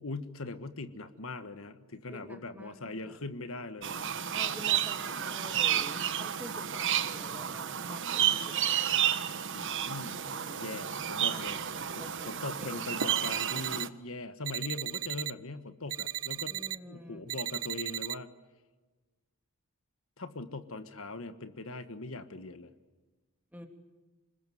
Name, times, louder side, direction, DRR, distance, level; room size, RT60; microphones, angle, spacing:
voice 1, 0.0-4.0 9.5-10.2 10.6-11.6 11.9-16.6 16.9-18.3 20.2-22.7, left 2 dB, 65° left, 10 dB, 1.5 m, -41 dB
voice 2, 2.1-3.2 4.3-8.8 10.2-10.9 11.3-12.8 16.5-17.2 23.5-23.7, equal, 5° right, 5 dB, 3.1 m, -49 dB
sound 1, 3.8-13.9, right 9 dB, 55° right, 1.2 m, -31 dB
sound 2, 13.0-13.9 14.4-15.3 15.9-16.8 17.3-18.1, right 14 dB, 80° right, 0.8 m, -36 dB
27.5 x 21.0 x 9.3 m, 1.2 s
head